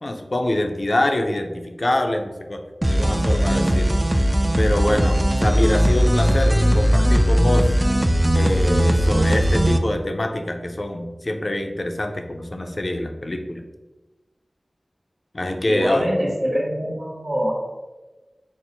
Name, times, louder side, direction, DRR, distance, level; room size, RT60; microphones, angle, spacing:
voice 1, 0.0-2.6 2.9-4.0 4.6-7.7 8.3-13.6 15.3-16.1, left 1 dB, 50° left, 5 dB, 0.4 m, -25 dB
sound 1, 2.8-9.8, equal, 20° right, 0.3 m, -18 dB
voice 2, 15.7-17.5, equal, 65° right, -7 dB, 0.8 m, -24 dB
4.4 x 2.0 x 3.8 m, 1.2 s
wide cardioid pair, 60°, 0 cm